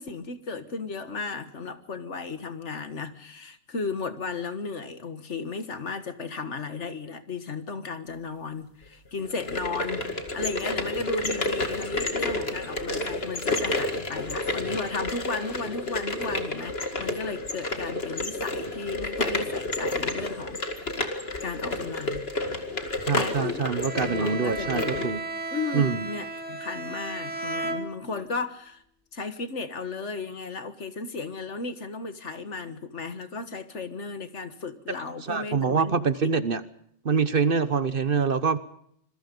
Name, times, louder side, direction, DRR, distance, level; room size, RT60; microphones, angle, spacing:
voice 1, 0.0-10.1 10.3-20.9 21.4-22.3 22.9-25.1 25.5-28.8 29.1-36.3, left 4 dB, 70° left, 10 dB, 1.9 m, -35 dB
sound 1, 9.2-25.1, left 2 dB, 55° left, 2.5 m, -30 dB
voice 2, 23.0-25.2 25.7-26.1 35.2-36.6 37.0-38.6, right 5 dB, 50° right, 13 dB, 1.2 m, -25 dB
Bowed string instrument, 23.8-28.4, right 2 dB, 5° right, 2.4 m, -34 dB
26.5 x 21.5 x 5.4 m, 0.69 s
omnidirectional pair, 1.3 m